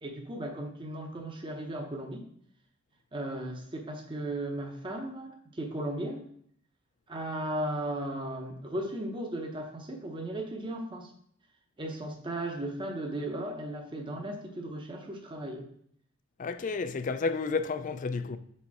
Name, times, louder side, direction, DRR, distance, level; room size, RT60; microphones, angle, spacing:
voice 1, 0.0-2.3 3.1-6.3 7.1-11.1 11.8-15.7, right 1 dB, 25° right, 0.7 m, -36 dB
voice 2, 16.4-18.4, left 4 dB, 40° left, 0.4 m, -31 dB
4.9 x 4.2 x 4.7 m
head